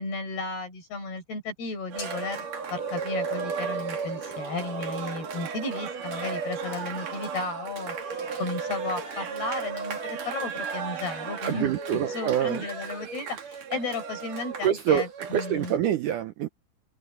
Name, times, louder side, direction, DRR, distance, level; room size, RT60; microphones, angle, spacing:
voice 1, 0.0-11.7 12.1-15.8, left 3 dB, 75° left, 8.0 m, -34 dB
Cheering, 1.9-15.8, right 5 dB, 55° right, 4.2 m, -34 dB
sound 1, 2.0-4.0, left 2 dB, 60° left, 8.8 m, -47 dB
voice 2, 11.4-12.7 14.6-16.5, right 10 dB, 75° right, 1.9 m, -26 dB
omnidirectional pair, 4.6 m